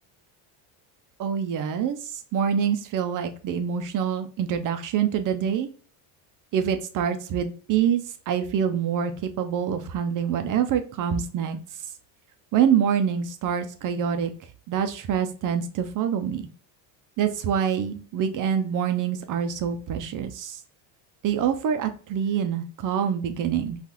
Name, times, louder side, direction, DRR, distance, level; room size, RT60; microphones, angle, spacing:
voice 1, 1.2-2.0 2.3-5.7 6.5-11.6 12.5-14.3 14.7-16.4 17.2-20.6 21.2-23.8, right 8 dB, 40° right, 8 dB, 0.5 m, -25 dB
3.9 x 2.4 x 2.9 m, 0.41 s
supercardioid pair, 105°, 50 cm